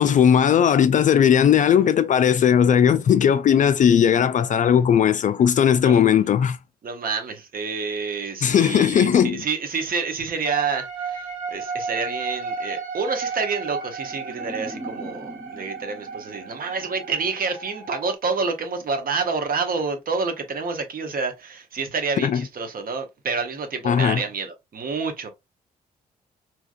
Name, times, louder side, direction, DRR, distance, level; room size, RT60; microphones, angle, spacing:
voice 1, 0.0-6.6 8.4-9.4 22.2-22.4 23.8-24.2, left 8 dB, 40° left, 0.4 m, -18 dB
voice 2, 6.8-25.3, right 4 dB, 45° right, 1.0 m, -28 dB
sound 1, 10.4-18.1, right 5 dB, 70° right, 0.9 m, -33 dB
sound 2, 14.0-17.2, equal, 5° right, 1.2 m, -41 dB
3.5 x 2.8 x 2.4 m
hypercardioid pair, 45°, 20 cm